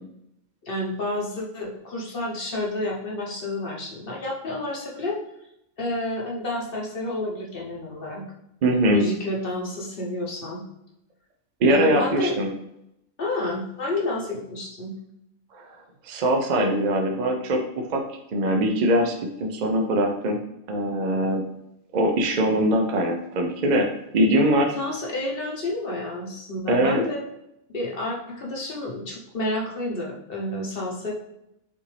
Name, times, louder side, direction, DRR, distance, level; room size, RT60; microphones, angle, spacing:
voice 1, 0.7-5.2 5.8-8.2 8.9-10.6 11.7-12.3 13.2-14.9 24.8-27.2 27.7-31.1, left 2 dB, 50° left, -2 dB, 0.9 m, -30 dB
voice 2, 8.6-9.0 11.6-12.5 15.5-15.8 16.0-18.0 18.3-19.2 19.4-20.4 20.7-21.4 21.9-23.9 24.1-24.7 26.7-27.0, right 1 dB, 60° right, 2 dB, 0.4 m, -22 dB
5.7 x 2.6 x 3.2 m, 0.82 s
omnidirectional pair, 1.4 m